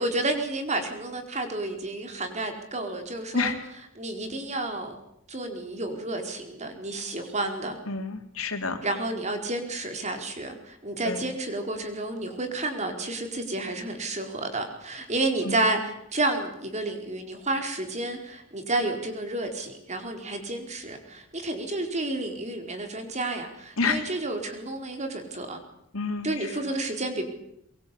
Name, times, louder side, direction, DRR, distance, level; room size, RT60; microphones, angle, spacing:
voice 1, 0.0-3.6 4.0-5.0 5.3-7.8 8.8-25.6 26.2-27.2, right 2 dB, 35° right, 5 dB, 4.6 m, -30 dB
voice 2, 7.9-8.8 11.0-11.2 15.5-15.6 23.8-24.0 25.9-26.5, left 4 dB, 85° left, 5 dB, 3.8 m, -28 dB
23.5 x 23.0 x 8.5 m, 0.76 s
head